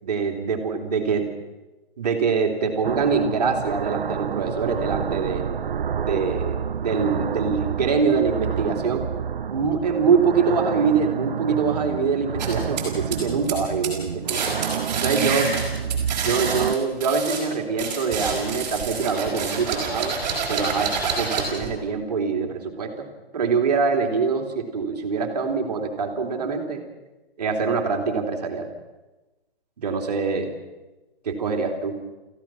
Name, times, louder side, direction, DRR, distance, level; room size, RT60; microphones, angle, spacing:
voice 1, 0.0-1.3 2.0-5.5 6.0-9.0 9.5-14.5 15.0-15.5 16.2-20.2 20.5-23.1 23.3-26.8 27.4-28.7 29.8-30.5 31.2-32.0, right 5 dB, 40° right, 3 dB, 2.8 m, -24 dB
sound 1, 2.8-16.8, right 7 dB, 55° right, 0.7 m, -29 dB
sound 2, 12.4-13.6 13.8-14.0 14.3-17.4 17.8-21.7, right 5 dB, 20° right, 4.6 m, -28 dB
29.5 x 15.0 x 6.0 m, 1.1 s
hypercardioid pair, 170°, 31 cm